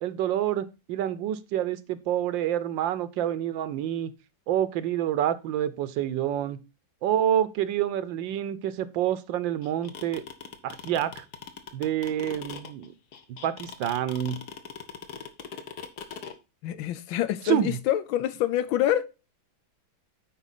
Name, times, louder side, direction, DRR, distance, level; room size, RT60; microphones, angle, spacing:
voice 1, 0.0-4.1 4.5-6.6 7.0-10.2 10.6-11.2 11.7-12.9 13.3-14.4 17.4-17.8, right 11 dB, 75° right, 1.4 m, -28 dB
sound 1, 9.6-16.3, left 7 dB, 60° left, 1.4 m, -40 dB
voice 2, 16.6-19.1, left 12 dB, 85° left, 1.5 m, -26 dB
10.0 x 4.4 x 4.1 m
omnidirectional pair, 2.1 m